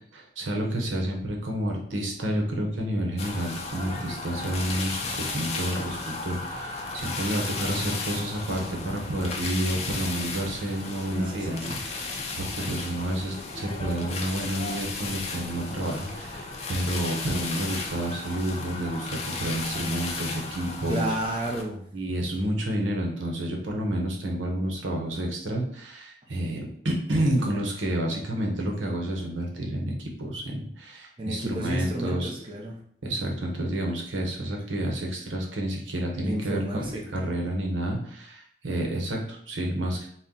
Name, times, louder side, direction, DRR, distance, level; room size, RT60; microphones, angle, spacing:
voice 1, 0.1-21.1 21.9-32.3 33.0-36.9 37.1-40.1, right 1 dB, 85° right, 0 dB, 0.9 m, -30 dB
sound 1, 3.2-21.6, left 3 dB, 35° left, 0.5 m, -34 dB
voice 2, 11.1-11.8 20.9-21.8 31.2-32.8 36.2-37.0, right 1 dB, 25° right, -3 dB, 0.6 m, -31 dB
4.2 x 2.2 x 3.8 m, 0.64 s
head